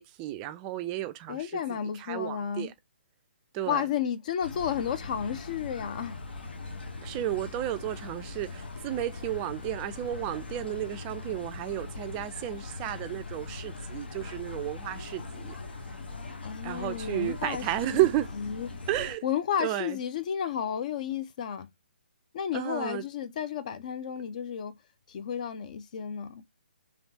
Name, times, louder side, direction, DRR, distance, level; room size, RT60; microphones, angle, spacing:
voice 1, 0.0-1.6 2.0-2.7 3.5-3.9 7.0-15.5 16.6-18.3 18.9-19.2 19.6-20.0 22.5-23.0, right 13 dB, 20° right, 0.4 m, -32 dB
voice 2, 1.3-2.7 3.7-6.2 16.4-18.0 18.4-18.7 19.2-21.7 22.3-24.8 25.1-26.4, left 8 dB, 40° left, 0.5 m, -32 dB
sound 1, 4.4-19.1, left 3 dB, 65° left, 0.9 m, -41 dB
3.3 x 2.9 x 2.6 m
figure-of-eight pair, 140°, 6 cm